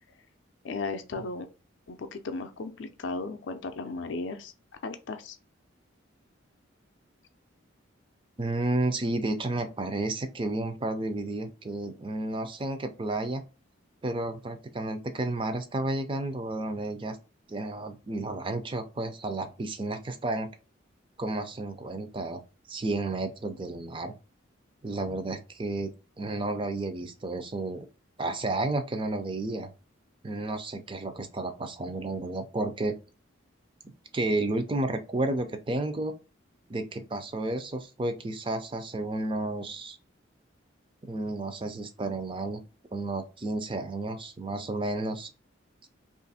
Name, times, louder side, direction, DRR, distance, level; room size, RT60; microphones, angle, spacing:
voice 1, 0.6-1.5 1.9-4.5 4.8-5.4, left 3 dB, 60° left, 0.4 m, -35 dB
voice 2, 8.4-13.4 14.0-17.2 17.5-20.5 21.2-22.4 22.7-24.1 24.8-25.9 26.2-27.9 28.2-29.7 30.2-32.9 34.1-36.1 36.7-40.0 41.0-42.6 42.9-45.3, right 2 dB, 25° right, 0.4 m, -31 dB
3.0 x 2.5 x 4.0 m
head